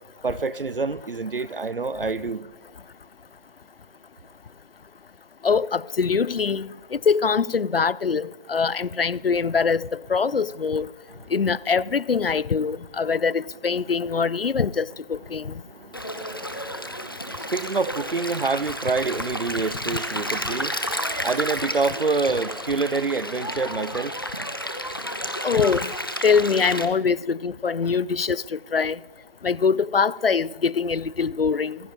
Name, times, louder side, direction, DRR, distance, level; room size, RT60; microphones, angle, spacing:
voice 1, 0.2-2.5 11.2-11.3 15.4-24.2, right 4 dB, 70° right, 0.7 m, -27 dB
voice 2, 5.4-10.9 11.3-15.5 25.4-25.9 26.2-29.0 29.4-31.8, left 5 dB, 75° left, 0.5 m, -23 dB
Stream, 15.9-26.9, equal, 25° left, 0.8 m, -31 dB
25.5 x 10.5 x 2.9 m
figure-of-eight pair, 165°, 29 cm